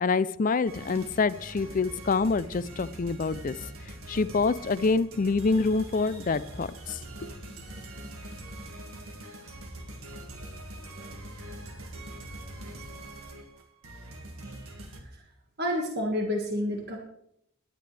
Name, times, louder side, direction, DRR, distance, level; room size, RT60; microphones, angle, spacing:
voice 1, 0.0-3.5 4.1-7.0, left 4 dB, 35° left, 16 dB, 0.4 m, -26 dB
sound 1, 0.7-15.0, right 1 dB, 75° right, 2.0 m, -43 dB
voice 2, 14.4-14.8 15.0-15.2 15.6-17.0, left 1 dB, 45° right, 1 dB, 1.8 m, -30 dB
19.0 x 11.0 x 3.4 m, 0.72 s
head